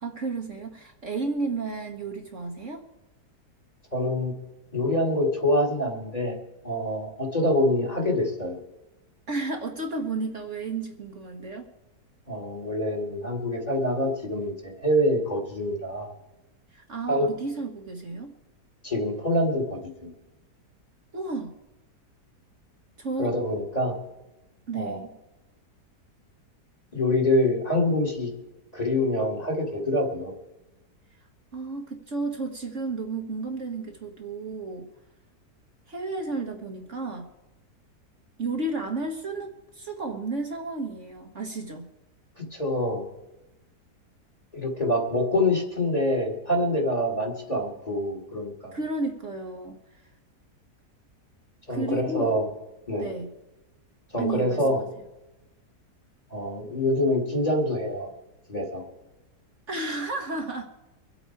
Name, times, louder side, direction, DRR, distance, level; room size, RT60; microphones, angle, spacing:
voice 1, 0.0-2.8 9.3-11.7 16.7-18.3 21.1-21.5 23.0-23.4 24.7-25.1 31.5-34.9 35.9-37.3 38.4-41.9 48.7-50.0 51.7-52.4 52.9-53.3 54.2-54.9 59.7-60.7, right 3 dB, 50° right, 3 dB, 1.5 m, -32 dB
voice 2, 3.9-4.3 4.7-6.4 6.6-8.6 12.3-16.1 17.1-17.3 18.8-20.1 23.2-23.9 24.7-25.0 26.9-28.3 28.7-30.4 42.5-43.1 44.5-48.8 51.7-52.5 52.9-53.1 54.1-54.8 56.3-58.1 58.5-58.8, left 1 dB, 25° left, 1 dB, 2.4 m, -25 dB
24.5 x 8.3 x 4.6 m, 1.0 s
omnidirectional pair, 1.8 m